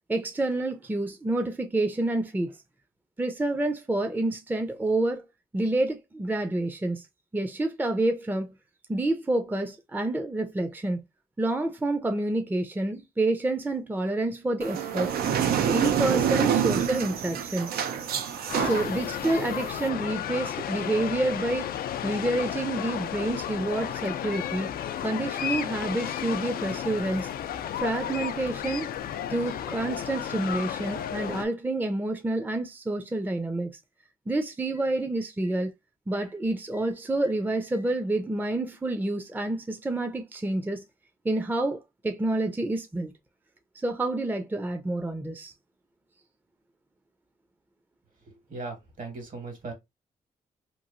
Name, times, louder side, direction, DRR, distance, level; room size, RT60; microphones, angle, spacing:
voice 1, 0.1-2.6 3.2-5.2 5.5-7.1 7.3-8.5 8.9-11.0 11.4-15.2 15.6-17.7 18.6-21.7 22.0-24.7 25.0-27.3 27.8-28.9 29.3-33.7 34.3-35.7 36.1-40.8 41.2-43.1 43.8-45.5, right 2 dB, 10° right, 0.5 m, -28 dB
sound 1, 14.6-19.9, right 8 dB, 80° right, 0.5 m, -27 dB
sound 2, 18.5-31.5, left 10 dB, 75° left, 0.4 m, -33 dB
voice 2, 48.3-49.7, right 3 dB, 60° right, 1.7 m, -38 dB
3.0 x 2.5 x 2.5 m
supercardioid pair, 60°, 16 cm